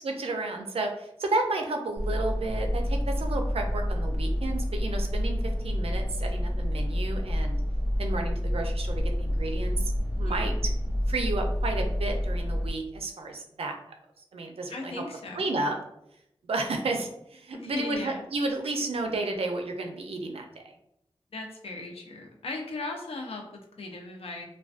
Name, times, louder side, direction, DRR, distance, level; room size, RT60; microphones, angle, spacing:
voice 1, 0.0-7.6 8.0-10.7 11.1-13.8 14.3-15.0 15.3-15.8 16.5-20.4, right 2 dB, 90° right, 3 dB, 0.4 m, -32 dB
sound 1, 1.9-12.7, equal, 70° left, 1.0 m, -28 dB
voice 2, 10.2-10.6 14.7-15.5 17.5-18.2 21.3-24.5, left 2 dB, 85° left, 2 dB, 0.4 m, -37 dB
2.4 x 2.2 x 2.4 m, 0.79 s
wide cardioid pair, 55°, 10 cm